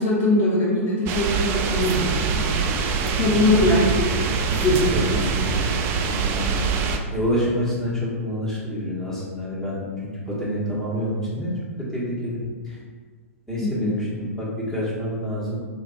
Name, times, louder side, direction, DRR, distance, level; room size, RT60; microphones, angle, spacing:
voice 1, 0.0-2.6 3.2-4.2 4.6-5.3 13.6-13.9, left 1 dB, 35° left, -7 dB, 0.8 m, -21 dB
sound 1, 1.1-7.0, right 5 dB, 30° right, 0.3 m, -24 dB
voice 2, 3.2-3.7 4.5-4.7 4.9-6.7 7.1-9.8 10.1-11.5 11.9-12.4 12.6-12.8 13.5-15.6, equal, 5° left, -8 dB, 1.2 m, -28 dB
3.2 x 2.3 x 3.9 m, 1.5 s
figure-of-eight pair, 110°, 8 cm